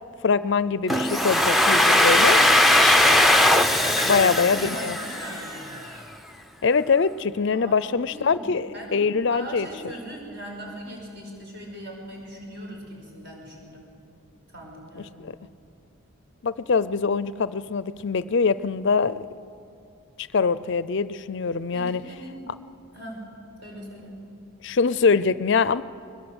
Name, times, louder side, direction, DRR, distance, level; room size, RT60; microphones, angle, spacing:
voice 1, 0.2-2.4 4.0-5.0 6.6-9.7 15.2-15.3 16.4-19.3 20.2-22.0 24.6-25.8, left 5 dB, 55° left, 17 dB, 0.4 m, -23 dB
Domestic sounds home sounds, 0.9-5.7, left 1 dB, ahead, 0.6 m, -19 dB
sound 1, 2.7-6.1, left 1 dB, 20° right, 2.7 m, -34 dB
voice 2, 4.0-5.6 7.5-8.5 8.7-13.9 14.5-15.2 21.7-22.5 22.9-23.3 23.6-24.2, right 1 dB, 50° right, 0 dB, 6.0 m, -40 dB
22.0 x 20.5 x 8.0 m, 2.7 s
head